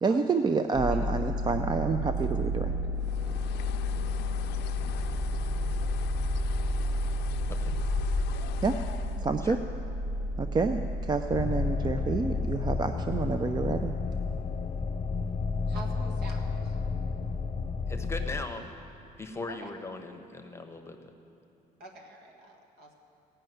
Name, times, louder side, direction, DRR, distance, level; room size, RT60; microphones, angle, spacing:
voice 1, 0.0-2.7 8.6-8.8 9.2-9.6 10.4-13.9, right 4 dB, 25° right, 7 dB, 0.5 m, -28 dB
sound 1, 0.7-13.4, left 1 dB, 45° right, 1.2 m, -32 dB
Bird, 3.0-9.3, left 9 dB, 85° left, 0.5 m, -39 dB
sound 2, 11.3-18.4, left 4 dB, 35° left, 0.6 m, -31 dB
voice 2, 15.7-16.8 19.5-19.7 21.8-22.9, right 2 dB, 70° right, 1 dB, 1.9 m, -46 dB
voice 3, 17.9-18.6 19.2-21.1, left 2 dB, 15° left, 6 dB, 0.9 m, -39 dB
16.5 x 5.6 x 9.2 m, 2.7 s
cardioid pair, 110°, 17 cm